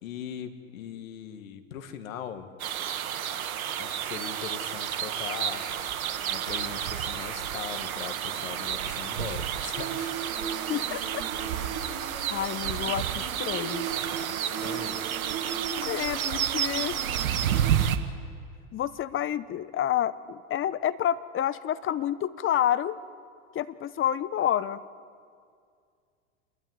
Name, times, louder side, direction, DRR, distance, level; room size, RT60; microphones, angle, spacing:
voice 1, 0.0-2.5 3.8-5.7 5.9-10.1 14.3-15.0, left 9 dB, 75° left, 8 dB, 2.1 m, -40 dB
sound 1, 2.6-18.0, right 9 dB, 85° right, 1.5 m, -31 dB
Human voice, 9.7-17.7, right 7 dB, 35° right, 5.4 m, -38 dB
voice 2, 10.7-11.0 12.3-13.9 15.8-17.0 18.7-23.0 23.5-24.8, left 10 dB, 30° left, 15 dB, 0.9 m, -29 dB
28.5 x 12.5 x 9.6 m, 2.2 s
hypercardioid pair, 95°, 41 cm